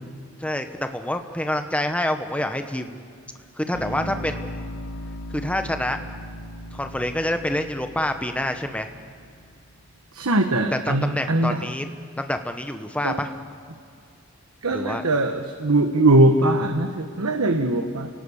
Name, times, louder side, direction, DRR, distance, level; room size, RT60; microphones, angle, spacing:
voice 1, 0.4-3.1 3.6-4.7 5.3-6.0 6.7-8.9 10.7-11.9 12.2-13.3 14.7-15.0, left 1 dB, 5° left, 7 dB, 1.1 m, -27 dB
sound 1, 3.7-9.8, equal, 80° left, 3.7 m, -37 dB
voice 2, 10.1-11.7 13.0-13.2 14.6-18.1, right 2 dB, 90° right, 6 dB, 1.2 m, -21 dB
30.0 x 18.0 x 7.2 m, 2.4 s
head